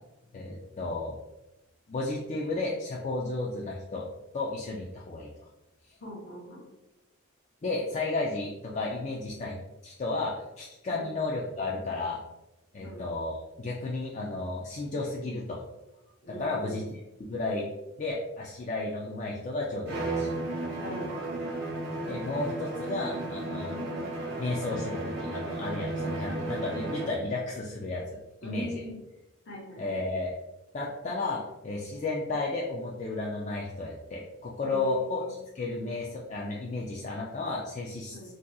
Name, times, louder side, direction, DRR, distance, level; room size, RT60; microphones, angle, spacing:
voice 1, 0.3-1.2 1.9-4.1 4.3-5.5 7.6-9.6 9.8-12.2 12.7-15.6 16.3-16.8 17.2-17.7 18.0-20.4 22.1-23.7 24.4-28.0 28.4-28.8 29.8-30.3 30.7-38.4, left 2 dB, 35° left, -3 dB, 0.3 m, -33 dB
voice 2, 6.0-6.7 10.9-11.2 12.8-13.1 16.2-16.9 20.8-21.3 23.7-23.9 28.4-29.0 29.5-29.8 34.6-35.3 38.1-38.3, equal, 60° left, -2 dB, 0.9 m, -41 dB
Bowed string instrument, 19.9-27.3, right 2 dB, 50° right, 0.6 m, -34 dB
3.8 x 2.7 x 2.3 m, 0.99 s
head